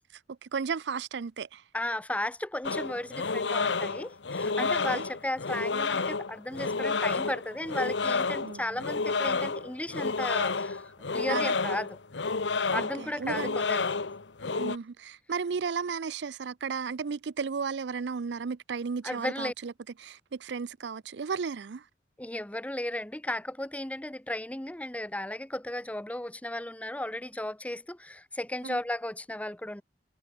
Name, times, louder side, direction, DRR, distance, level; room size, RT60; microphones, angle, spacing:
voice 1, 0.4-1.6 4.6-5.1 8.4-8.8 11.3-11.5 12.7-13.6 14.6-19.7 20.0-21.8 28.6-28.8, right 5 dB, 70° right, 0.5 m, -34 dB
voice 2, 1.7-12.0 12.7-13.9 14.4-14.7 19.0-19.5 22.2-29.8, left 1 dB, 10° left, 0.9 m, -35 dB
sound 1, 2.6-14.8, left 4 dB, 90° left, 1.2 m, -30 dB
head